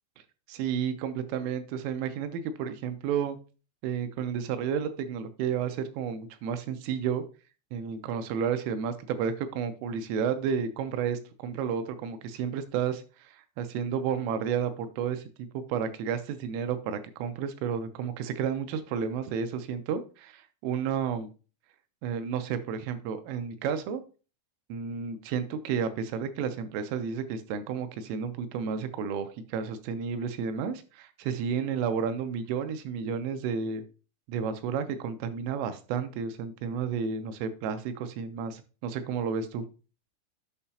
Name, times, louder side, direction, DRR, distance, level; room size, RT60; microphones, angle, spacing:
voice 1, 0.5-3.4 3.8-7.2 7.7-21.3 22.0-24.0 24.7-33.8 34.3-39.6, right 7 dB, 85° right, 9 dB, 3.3 m, -31 dB
8.7 x 5.6 x 2.8 m, 0.35 s
omnidirectional pair, 5.6 m